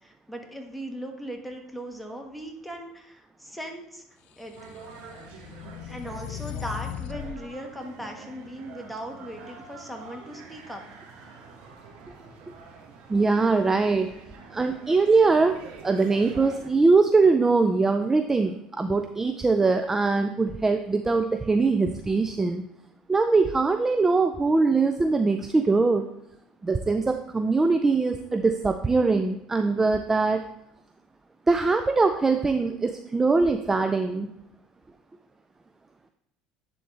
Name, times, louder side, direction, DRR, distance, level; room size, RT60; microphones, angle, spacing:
voice 1, 0.0-4.0 4.4-4.5 5.9-10.8, right 1 dB, ahead, 2 dB, 1.4 m, -38 dB
sound 1, 4.5-7.4, left 10 dB, 65° left, 0.4 m, -38 dB
sound 2, 4.6-16.7, right 4 dB, 70° right, 1.5 m, -46 dB
voice 2, 13.1-14.1 14.5-22.6 23.1-26.1 26.6-30.4 31.5-34.3, right 3 dB, 20° right, 7 dB, 0.4 m, -22 dB
10.0 x 3.8 x 3.3 m, 0.84 s
supercardioid pair, 85°, 2 cm